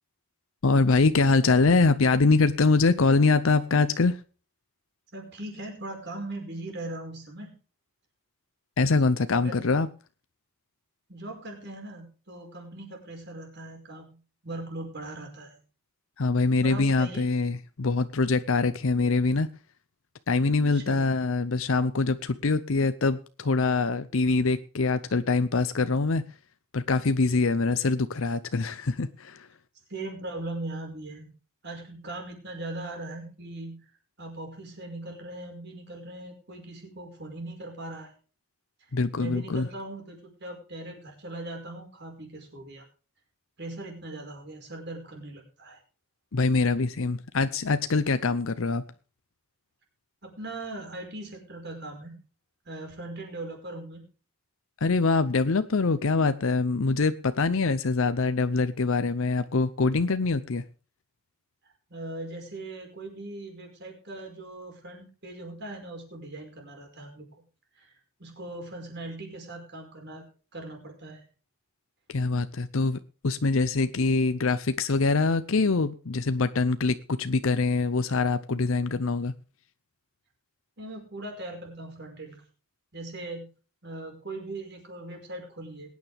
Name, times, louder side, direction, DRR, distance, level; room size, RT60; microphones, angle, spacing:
voice 1, 0.6-4.2 8.8-9.9 16.2-19.5 20.3-26.2 26.7-29.5 38.9-39.7 46.3-48.8 54.8-60.6 72.1-79.3, left 3 dB, 65° left, 12 dB, 0.7 m, -24 dB
voice 2, 5.1-7.5 9.3-9.7 11.1-14.2 14.4-15.6 16.6-17.3 20.7-21.1 29.9-31.3 31.6-33.9 34.2-38.1 39.2-42.9 43.6-45.8 50.2-52.2 52.7-54.1 61.9-67.3 67.8-67.9 68.2-70.2 70.5-71.3 80.8-82.4 82.9-83.5 83.8-85.9, right 2 dB, 50° right, 2 dB, 5.2 m, -39 dB
21.0 x 9.5 x 3.5 m, 0.37 s
head